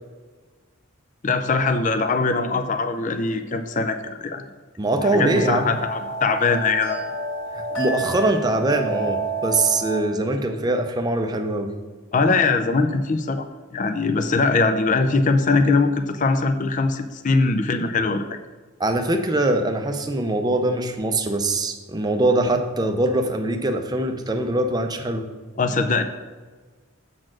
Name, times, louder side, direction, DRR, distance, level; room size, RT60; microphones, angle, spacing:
voice 1, 1.2-4.5 5.1-7.0 12.1-13.4 13.7-18.2 25.6-26.0, left 3 dB, 35° left, 8 dB, 0.4 m, -21 dB
voice 2, 4.8-5.7 7.5-11.7 18.8-25.3, right 2 dB, 20° right, 6 dB, 0.5 m, -22 dB
sound 1, 5.0-10.0, right 3 dB, 60° left, 1.9 m, -29 dB
7.6 x 4.2 x 6.1 m, 1.4 s
head